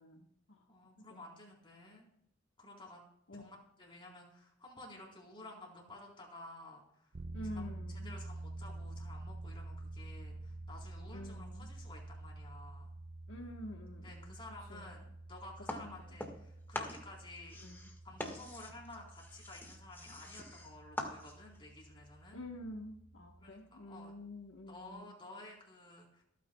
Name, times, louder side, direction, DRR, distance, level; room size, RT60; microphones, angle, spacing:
voice 1, 0.0-0.7 1.1-1.3 3.3-3.4 7.3-8.2 11.1-11.7 13.3-14.4 14.7-15.0 15.8-16.2 17.6-17.9 22.3-25.1, left 1 dB, 70° left, 1 dB, 1.4 m, -48 dB
voice 2, 0.7-2.0 2.6-3.0 3.3-7.2 7.5-7.7 8.0-12.9 14.0-17.6 18.0-22.4 23.4-24.1 24.7-26.2, left 2 dB, 25° left, -2 dB, 4.1 m, -53 dB
sound 1, 7.1-23.5, right 2 dB, 50° right, 0.7 m, -49 dB
sound 2, 15.7-16.5 16.7-21.6, left 1 dB, 10° left, 1.7 m, -44 dB
26.5 x 9.3 x 2.3 m, 0.74 s
head